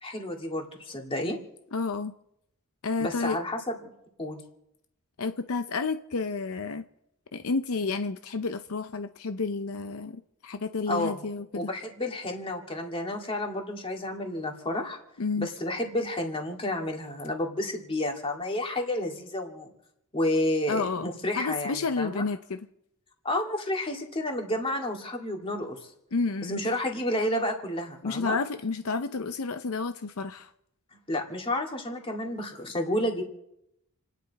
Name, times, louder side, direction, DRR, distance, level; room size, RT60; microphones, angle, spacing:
voice 1, 0.0-1.4 3.0-3.6 4.2-4.4 10.9-11.2 11.5-15.0 15.4-19.7 20.1-22.2 23.2-25.8 26.4-28.4 31.1-33.2, left 1 dB, 25° left, 2 dB, 2.4 m, -30 dB
voice 2, 1.7-2.1 2.8-3.4 5.2-6.8 7.3-11.7 15.2-15.5 20.7-21.1 21.4-22.6 26.1-26.6 28.0-30.5, left 4 dB, 70° left, 9 dB, 0.6 m, -30 dB
29.5 x 10.0 x 4.2 m, 0.79 s
head